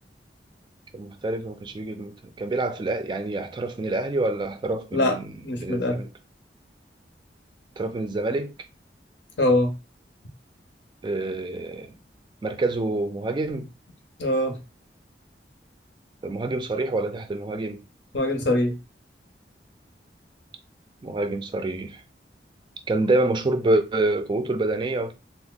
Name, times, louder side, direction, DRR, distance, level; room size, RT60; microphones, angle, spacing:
voice 1, 0.9-5.3 5.6-6.1 7.8-8.5 11.0-11.9 12.4-13.7 16.2-17.8 21.0-22.0 22.9-25.1, right 2 dB, 25° right, 0.3 m, -27 dB
voice 2, 5.4-6.0 9.4-9.7 14.2-14.6 18.1-18.7, left 1 dB, 85° left, 0.8 m, -22 dB
2.8 x 2.1 x 3.9 m
head